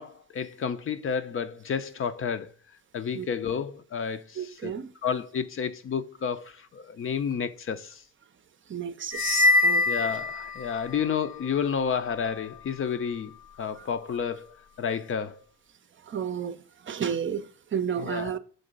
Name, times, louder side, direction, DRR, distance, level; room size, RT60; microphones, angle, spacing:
voice 1, 0.0-2.5 2.9-4.7 5.0-8.0 9.9-14.5 14.8-15.4 18.0-18.3, left 7 dB, 45° left, 0.6 m, -31 dB
voice 2, 4.4-4.9 8.7-9.9 13.8-13.9 16.1-16.6 16.8-18.4, right 8 dB, 40° right, 0.6 m, -32 dB
sound 1, 9.1-11.0, left 2 dB, 65° left, 0.9 m, -23 dB
6.5 x 3.8 x 5.1 m
cardioid pair, 90°, 30 cm